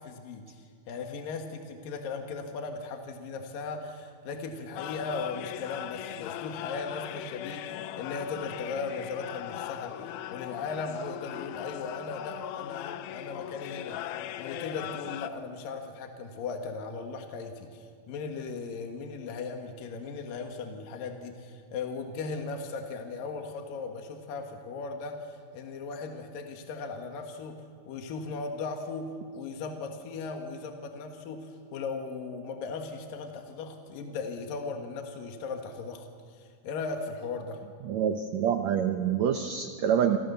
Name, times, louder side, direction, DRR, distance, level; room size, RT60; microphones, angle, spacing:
voice 1, 0.0-14.1 14.4-27.6 27.9-36.1 36.4-37.6, left 4 dB, 70° left, 4 dB, 3.3 m, -37 dB
sound 1, 4.8-15.3, left 12 dB, 85° left, 2.7 m, -39 dB
voice 2, 37.9-40.2, right 8 dB, 70° right, 7 dB, 1.8 m, -26 dB
28.5 x 25.5 x 6.9 m, 2.1 s
omnidirectional pair, 4.2 m